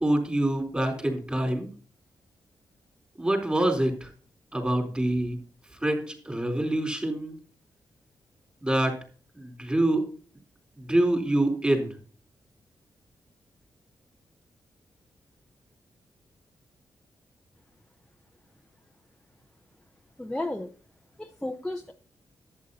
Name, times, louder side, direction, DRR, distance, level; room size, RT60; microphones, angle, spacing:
voice 1, 0.0-1.7 3.2-4.1 4.5-5.4 5.8-7.4 8.6-8.9 9.3-10.0 10.8-11.9, right 1 dB, 15° right, 3 dB, 4.2 m, -26 dB
voice 2, 20.2-20.7 21.2-21.9, left 1 dB, 10° left, 2 dB, 0.8 m, -33 dB
11.0 x 9.0 x 4.2 m, 0.39 s
cardioid pair, 90°, 7 cm